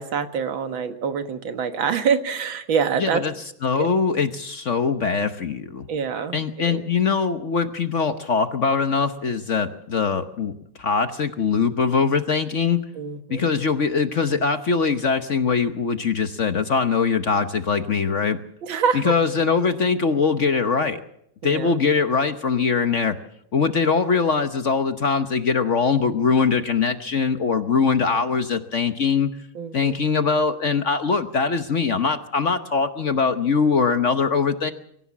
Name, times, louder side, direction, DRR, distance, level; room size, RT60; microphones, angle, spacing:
voice 1, 0.0-3.2 3.8-3.9 5.9-6.8 13.0-13.5 18.6-19.1 21.4-21.8 29.5-30.0, right 6 dB, 85° right, 8 dB, 2.2 m, -25 dB
voice 2, 3.0-3.3 3.6-5.9 6.3-10.5 10.8-12.8 13.3-18.4 18.9-21.0 21.4-23.2 23.5-29.3 29.7-34.7, left 5 dB, 50° left, 9 dB, 1.1 m, -22 dB
24.0 x 15.0 x 7.3 m, 0.73 s
omnidirectional pair, 2.1 m